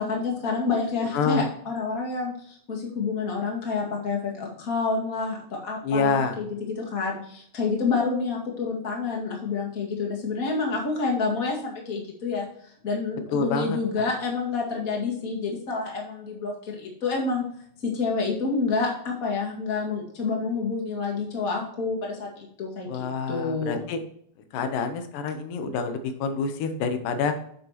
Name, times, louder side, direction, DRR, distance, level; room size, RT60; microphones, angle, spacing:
voice 1, 0.0-5.4 5.6-12.5 12.8-17.4 17.8-23.8, left 4 dB, 30° left, -1 dB, 2.1 m, -28 dB
voice 2, 1.1-1.5 5.8-6.4 13.3-14.1 22.9-24.0 24.5-27.3, left 5 dB, 90° left, 7 dB, 2.6 m, -27 dB
10.0 x 7.0 x 3.0 m, 0.64 s
omnidirectional pair, 3.7 m